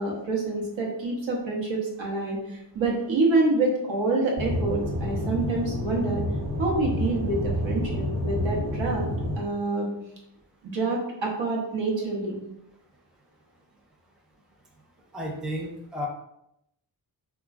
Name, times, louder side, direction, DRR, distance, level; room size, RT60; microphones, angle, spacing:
voice 1, 0.0-6.2 6.6-9.1 9.4-9.9 10.6-12.4, right 2 dB, 90° right, -2 dB, 0.9 m, -27 dB
Aircraft / Engine, 4.4-9.4, equal, 50° right, 1.2 m, -29 dB
voice 2, 15.1-16.1, equal, ahead, -1 dB, 0.4 m, -32 dB
3.0 x 2.3 x 2.4 m, 0.81 s
wide cardioid pair, 100°, 44 cm